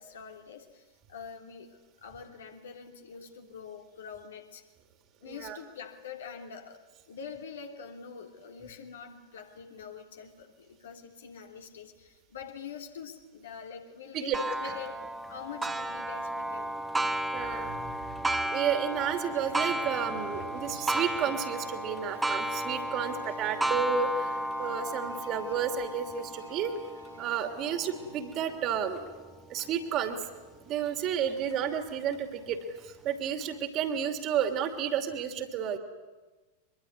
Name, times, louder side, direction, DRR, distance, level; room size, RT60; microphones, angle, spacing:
voice 1, 0.0-4.6 5.2-6.8 7.1-16.7, left 6 dB, 65° left, 4 dB, 3.0 m, -45 dB
voice 2, 5.2-5.6 14.1-14.4 17.3-18.1 18.4-26.7 27.2-29.1 29.5-30.2 30.6-35.8, right 8 dB, 35° right, 6 dB, 2.8 m, -31 dB
Clock, 14.3-29.6 30.2-30.3 30.9-31.0 31.9-32.0, right 1 dB, 10° right, 1.4 m, -34 dB
sound 1, 18.8-29.0, right 2 dB, 75° right, 5.4 m, -53 dB
23.5 x 22.5 x 9.7 m, 1.3 s
figure-of-eight pair, 90°, 0 cm